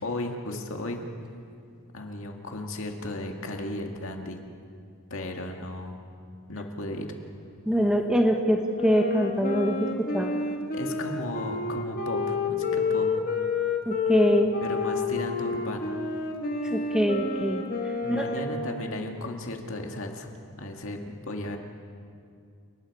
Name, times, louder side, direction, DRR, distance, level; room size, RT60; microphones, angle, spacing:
voice 1, 0.0-1.0 1.9-4.4 5.1-6.0 6.5-7.1 10.7-13.2 14.6-15.9 18.0-20.3 20.6-21.6, left 1 dB, 70° left, 2 dB, 2.1 m, -35 dB
voice 2, 7.7-10.3 13.9-14.5 16.7-17.6 18.1-18.2, equal, 5° right, 3 dB, 1.3 m, -24 dB
Wind instrument woodwind instrument, 8.7-18.8, left 4 dB, 40° left, 2.0 m, -29 dB
29.5 x 19.5 x 4.9 m, 2.4 s
head